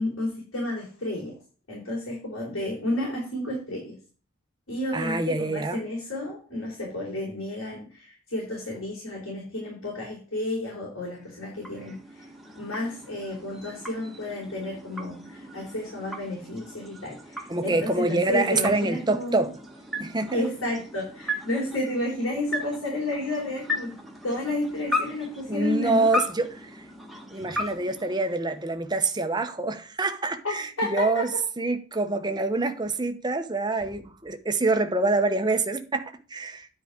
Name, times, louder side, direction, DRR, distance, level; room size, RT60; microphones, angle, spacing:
voice 1, 0.0-1.3 1.7-4.0 4.7-12.3 12.5-19.5 20.3-23.9 24.2-26.1 30.4-31.2, left 1 dB, 75° left, 4.0 m, -31 dB
voice 2, 4.9-5.8 17.5-19.5 20.0-20.4 25.5-26.9 27.3-31.3 31.6-36.7, right 3 dB, 20° right, 0.9 m, -26 dB
sound 1, 11.1-28.9, left 1 dB, ahead, 1.4 m, -37 dB
9.9 x 4.9 x 6.2 m
head